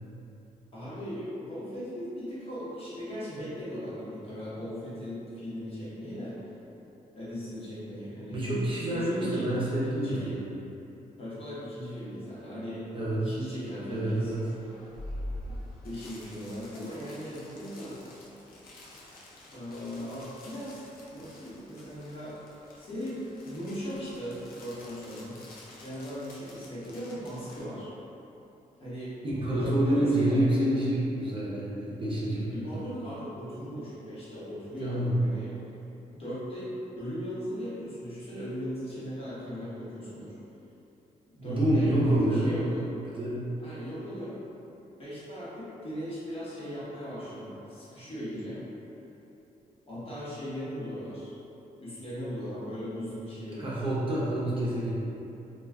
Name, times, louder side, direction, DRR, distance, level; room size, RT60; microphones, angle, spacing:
voice 1, 0.7-6.4 7.1-8.4 8.9-9.5 9.9-10.4 11.2-12.9 13.2-14.3 15.1-15.6 15.8-18.0 19.5-20.8 21.1-22.4 22.8-25.4 25.8-27.9 28.8-29.2 29.4-30.4 32.5-35.5 36.1-40.4 41.3-42.9 43.6-44.4 45.0-48.6 49.8-51.3 51.8-53.8, equal, 40° left, -10 dB, 1.0 m, -38 dB
voice 2, 8.3-10.4 12.9-13.3 13.9-14.4 29.2-32.8 34.8-35.1 41.4-42.6 43.2-43.4 53.6-54.9, right 1 dB, 35° right, -8 dB, 0.7 m, -27 dB
sound 1, 13.9-27.6, left 1 dB, 90° left, 0.5 m, -46 dB
2.3 x 2.3 x 3.3 m, 2.8 s
cardioid pair, 105°, 15 cm